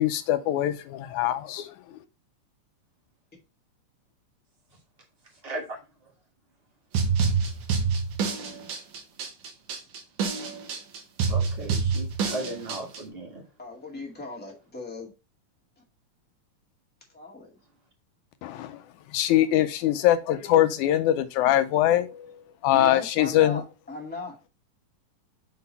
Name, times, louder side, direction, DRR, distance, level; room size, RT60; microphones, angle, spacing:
voice 1, 0.0-1.7 18.4-18.8 19.1-23.6, left 12 dB, 80° left, 2.0 m, -23 dB
voice 2, 5.4-5.8 11.3-13.4, right 2 dB, 60° right, 0.6 m, -36 dB
sound 1, 6.9-13.0, right 5 dB, 80° right, 2.7 m, -27 dB
voice 3, 13.6-15.1 17.1-17.5 22.7-24.5, left 3 dB, 5° left, 1.3 m, -38 dB
6.3 x 4.0 x 4.1 m
omnidirectional pair, 3.6 m